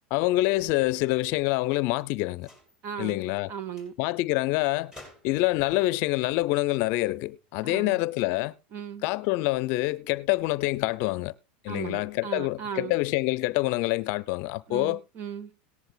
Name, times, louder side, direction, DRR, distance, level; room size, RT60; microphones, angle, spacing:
voice 1, 0.1-2.5 3.0-3.5 4.0-4.9 5.2-8.5 9.0-11.3 11.6-15.0, left 19 dB, 50° left, 0.6 m, -26 dB
sound 1, 2.4-2.8 3.4-3.5 3.7-3.9 4.9-5.5 6.8-7.9, left 1 dB, 10° right, 4.9 m, -52 dB
voice 2, 2.8-3.2 3.5-3.9 7.6-8.0 8.7-9.1 11.7-12.9 14.7-15.5, right 8 dB, 40° right, 1.4 m, -37 dB
18.0 x 10.5 x 2.4 m
supercardioid pair, 135°, 6 cm